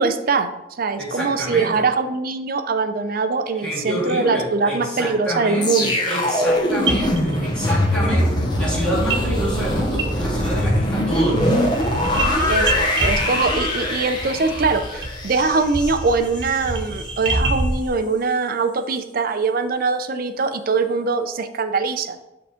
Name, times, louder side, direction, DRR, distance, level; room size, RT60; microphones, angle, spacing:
voice 1, 0.0-6.0 12.5-22.2, right 4 dB, 50° right, 9 dB, 0.5 m, -22 dB
voice 2, 1.0-1.8 3.6-11.7, equal, 5° left, -7 dB, 2.2 m, -26 dB
sound 1, 5.6-16.7 17.0-17.3, left 1 dB, 25° left, 0.9 m, -22 dB
sound 2, 6.5-6.6 6.9-7.8 9.1-9.3 9.5-10.6 10.9-17.9, right 2 dB, 75° right, 1.2 m, -27 dB
5.9 x 3.6 x 5.0 m, 0.98 s
head